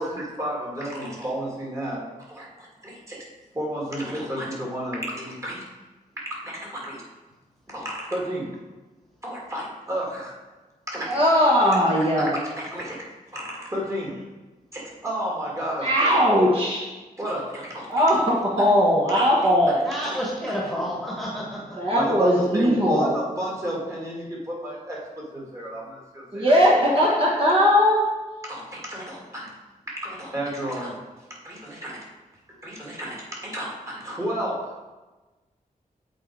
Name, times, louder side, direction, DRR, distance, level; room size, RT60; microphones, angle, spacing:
voice 1, 0.0-3.2 3.5-5.6 6.3-7.0 7.7-8.5 9.2-10.4 10.9-11.2 12.0-13.0 13.3-14.2 14.7-16.1 17.2-18.0 19.1-19.2 20.0-20.2 21.9-26.5 28.5-29.5 30.0-31.0 31.4-32.0 32.5-34.8, right 1 dB, 20° right, -4 dB, 1.8 m, -32 dB
voice 2, 11.1-12.3 15.8-16.9 17.9-19.8 21.8-23.1 26.3-28.0, equal, 40° right, -5 dB, 1.2 m, -19 dB
voice 3, 19.8-21.8, equal, ahead, -4 dB, 1.4 m, -30 dB
7.7 x 4.1 x 4.6 m, 1.2 s
wide cardioid pair, 140°, 15 cm